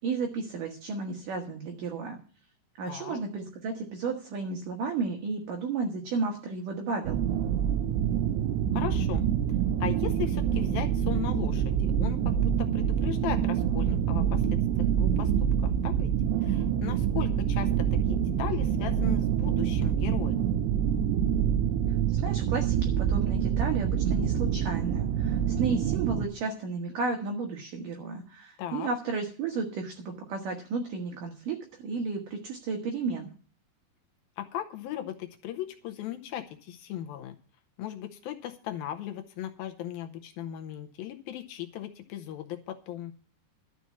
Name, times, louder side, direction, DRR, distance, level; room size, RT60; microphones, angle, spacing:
voice 1, 0.0-2.2 2.8-7.2 22.1-33.3, right 4 dB, 65° right, 3 dB, 2.4 m, -33 dB
voice 2, 2.9-3.2 8.7-9.3 9.8-15.3 15.6-16.1 16.4-20.4 28.6-28.9 34.4-37.4 37.8-43.1, left 12 dB, 75° left, 6 dB, 2.3 m, -37 dB
sound 1, 7.0-26.3, right 9 dB, 80° right, 3.1 m, -26 dB
12.5 x 6.0 x 8.3 m, 0.42 s
omnidirectional pair, 5.1 m